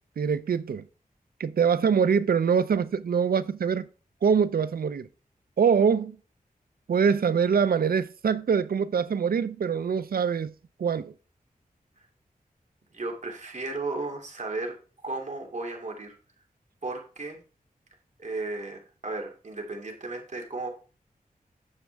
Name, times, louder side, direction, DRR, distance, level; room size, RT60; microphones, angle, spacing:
voice 1, 0.2-0.8 1.4-3.9 4.2-5.1 5.6-6.2 6.9-10.5 10.8-11.1, right 6 dB, 85° right, 0.5 m, -24 dB
voice 2, 12.9-14.7 15.0-16.2 16.8-17.4 18.2-20.7, right 2 dB, 55° right, 2.6 m, -34 dB
9.7 x 7.3 x 3.4 m
wide cardioid pair, 80°, 15 cm